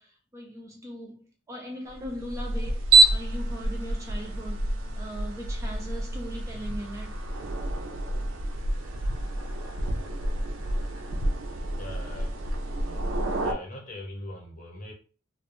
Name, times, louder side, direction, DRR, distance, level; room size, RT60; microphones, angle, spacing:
voice 1, 0.0-7.2, equal, 15° right, 0.3 m, -40 dB
sound 1, 1.9-13.5, right 2 dB, 85° right, 0.4 m, -27 dB
voice 2, 11.8-12.8 13.4-14.9, left 1 dB, 40° left, 0.7 m, -42 dB
2.4 x 2.1 x 2.9 m
head